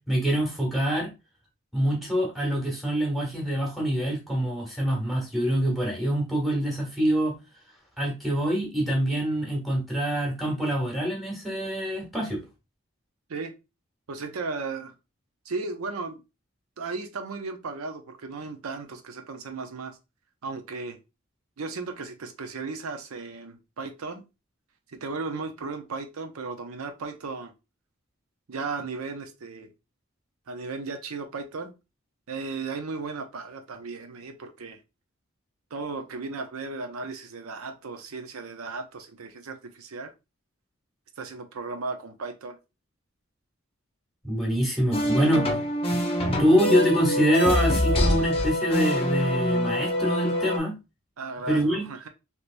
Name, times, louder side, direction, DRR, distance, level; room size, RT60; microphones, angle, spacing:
voice 1, 0.1-1.1 1.7-7.3 8.0-12.4 44.2-45.5 46.3-50.8 51.5-51.9, equal, ahead, 1.2 m, -25 dB
voice 2, 14.1-14.9 15.5-16.2 16.8-20.0 20.4-21.0 21.6-24.2 24.9-27.5 28.5-29.7 30.5-31.7 32.3-34.8 35.7-40.1 41.2-42.6 51.2-52.1, right 4 dB, 85° right, 0.6 m, -35 dB
sound 1, 44.9-50.6, left 1 dB, 25° left, 0.7 m, -25 dB
3.3 x 2.9 x 2.5 m
head